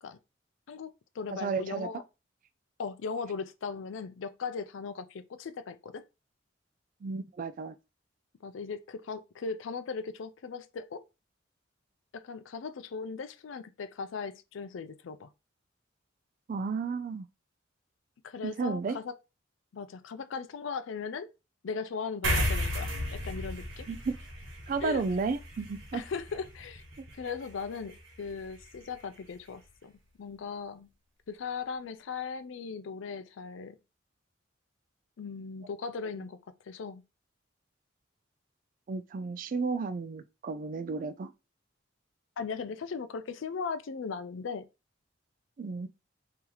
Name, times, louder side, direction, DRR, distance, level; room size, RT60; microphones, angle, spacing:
voice 1, 0.7-2.0 2.8-6.0 8.4-11.0 12.1-15.3 18.3-19.2 19.7-21.3 21.6-23.9 24.8-25.0 25.9-26.8 27.1-30.9 31.3-33.8 35.2-36.4 36.7-37.0 42.4-44.7, left 5 dB, 80° left, 0.4 m, -38 dB
voice 2, 1.3-1.9 7.0-7.8 16.5-17.3 18.4-19.0 23.9-24.1 24.7-26.0 27.0-27.1 38.9-41.3 45.6-45.9, right 4 dB, 45° right, 0.3 m, -33 dB
sound 1, 22.2-29.0, equal, 85° right, 1.2 m, -35 dB
2.9 x 2.8 x 3.8 m
head